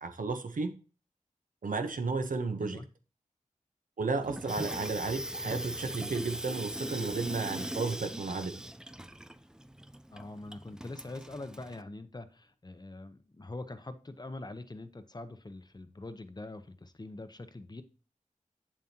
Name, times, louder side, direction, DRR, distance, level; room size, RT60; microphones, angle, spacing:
voice 1, 0.0-0.7 1.6-2.8 4.0-8.5, right 4 dB, 75° right, 1.0 m, -33 dB
Water tap faucet / Sink (filling or washing), 4.2-11.8, right 1 dB, 5° right, 0.4 m, -40 dB
voice 2, 10.1-17.8, left 2 dB, 30° left, 0.8 m, -44 dB
8.3 x 7.3 x 2.9 m
wide cardioid pair, 70°, 14 cm